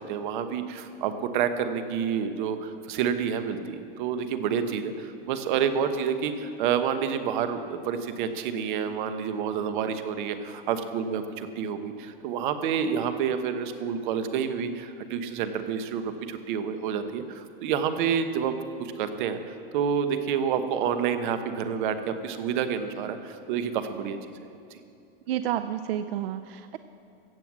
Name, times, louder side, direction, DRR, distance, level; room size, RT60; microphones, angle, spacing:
voice 1, 0.1-18.5 18.8-24.2 24.7-24.8, right 7 dB, 55° right, 9 dB, 1.2 m, -29 dB
voice 2, 25.3-26.8, right 11 dB, 85° right, 11 dB, 0.6 m, -30 dB
15.5 x 7.8 x 7.5 m, 2.7 s
supercardioid pair, 160°, 29 cm